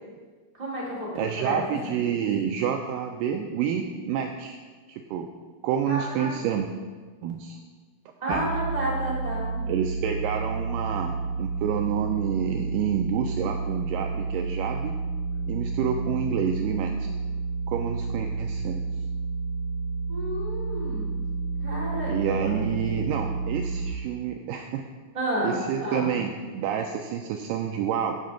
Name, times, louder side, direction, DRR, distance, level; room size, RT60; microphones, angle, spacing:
voice 1, 0.5-1.6 5.9-6.5 8.2-9.7 20.1-21.1 21.6-22.5 22.8-22.9 25.1-26.2, right 1 dB, 10° right, -8 dB, 2.5 m, -31 dB
voice 2, 1.2-4.6 4.9-5.3 5.6-6.7 7.2-7.6 8.3-8.5 9.7-15.0 15.5-17.1 17.7-18.8 22.1-24.8 25.4-28.2, right 8 dB, 85° right, 4 dB, 1.9 m, -28 dB
sound 1, 8.3-23.9, right 3 dB, 80° left, 2.0 m, -30 dB
14.0 x 5.7 x 3.8 m, 1.4 s
omnidirectional pair, 4.4 m